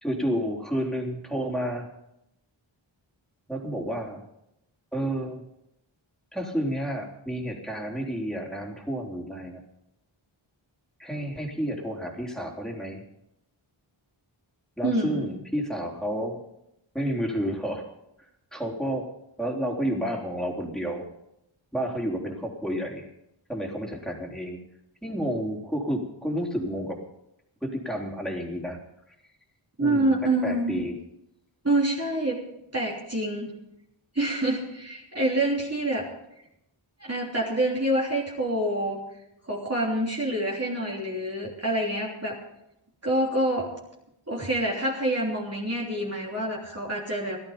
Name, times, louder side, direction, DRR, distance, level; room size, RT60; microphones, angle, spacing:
voice 1, 0.0-1.9 3.5-4.2 4.9-5.4 6.3-9.6 11.0-13.0 14.8-16.4 16.9-17.8 18.5-19.1 19.4-21.0 21.7-23.1 23.5-24.6 25.0-27.0 27.6-28.8 29.8-30.1 30.4-31.0, equal, ahead, -1 dB, 3.6 m, -30 dB
voice 2, 14.8-15.3 29.8-30.8 31.6-32.4 32.7-33.5 34.1-36.1 37.0-39.0 39.5-42.4 43.0-43.7 44.3-47.4, right 1 dB, 30° right, -4 dB, 3.3 m, -26 dB
17.0 x 13.0 x 5.2 m, 0.83 s
wide cardioid pair, 55°, 49 cm